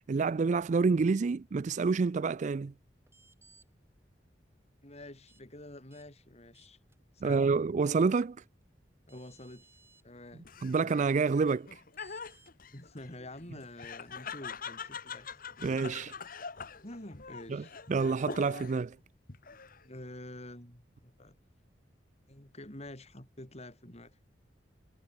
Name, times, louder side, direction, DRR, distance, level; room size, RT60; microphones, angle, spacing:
voice 1, 0.1-2.7 7.2-8.4 10.6-11.7 15.6-16.1 17.5-17.6 17.9-19.0, right 4 dB, 45° right, 0.4 m, -28 dB
sound 1, 3.1-3.7 5.3-5.4 5.9-6.0 6.5-7.0 8.6-8.7 9.1-10.0 12.0-12.5, right 3 dB, 15° right, 7.4 m, -61 dB
voice 2, 4.8-6.8 7.1-7.5 9.1-9.7 10.0-10.5 12.7-15.4 16.8-17.7 19.8-21.4 22.3-24.2, left 1 dB, 40° left, 5.2 m, -48 dB
Laughter, 10.4-18.9 19.3-20.0, left 5 dB, 55° left, 1.8 m, -44 dB
head